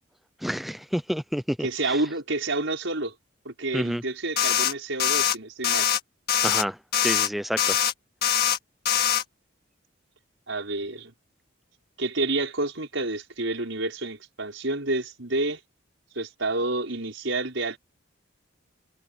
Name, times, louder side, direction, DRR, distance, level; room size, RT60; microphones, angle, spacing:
voice 1, 0.4-2.0 3.7-4.0 6.4-7.8, equal, ahead, 0.4 m, -29 dB
voice 2, 1.6-3.1 3.5-5.9 10.5-11.1 12.0-15.6 16.2-17.8, right 2 dB, 70° right, 5.3 m, -29 dB
sound 1, 4.4-4.7 5.0-5.3 5.6-6.0 6.3-6.6 6.9-7.3 7.6-7.9 8.2-8.6 8.9-9.2, left 9 dB, 50° left, 2.1 m, -23 dB
head